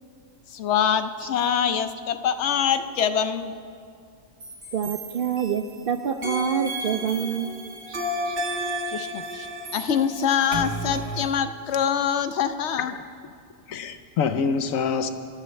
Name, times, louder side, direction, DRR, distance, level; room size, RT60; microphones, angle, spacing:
voice 1, 0.5-3.6 8.9-9.5 9.7-12.9, left 8 dB, 65° left, 10 dB, 0.8 m, -24 dB
sound 1, 4.4-5.8 6.2-11.3, right 1 dB, 90° right, 1.9 m, -32 dB
voice 2, 4.7-7.5 7.9-8.0 8.3-8.4, right 7 dB, 65° right, 6 dB, 0.5 m, -26 dB
voice 3, 12.9-13.3 13.7-15.1, left 5 dB, 85° left, 9 dB, 1.1 m, -26 dB
23.0 x 11.5 x 3.2 m, 2.3 s
omnidirectional pair, 1.4 m